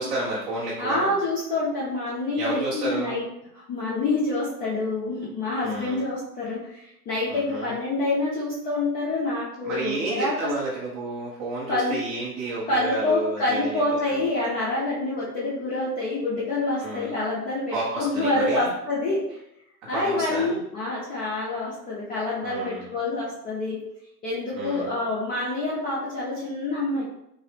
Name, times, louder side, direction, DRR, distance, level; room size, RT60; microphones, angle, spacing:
voice 1, 0.0-1.1 2.4-3.2 5.6-6.0 7.3-7.7 9.6-14.3 16.8-17.1 17.7-18.7 19.9-20.6 22.4-22.9 24.6-24.9, right 2 dB, 20° right, -5 dB, 0.5 m, -31 dB
voice 2, 0.8-3.2 3.5-10.5 11.7-12.0 12.7-19.2 19.9-23.8 24.2-27.0, left 2 dB, 15° left, -7 dB, 0.6 m, -27 dB
5.3 x 2.0 x 3.3 m, 0.81 s
figure-of-eight pair, 110°, 50 cm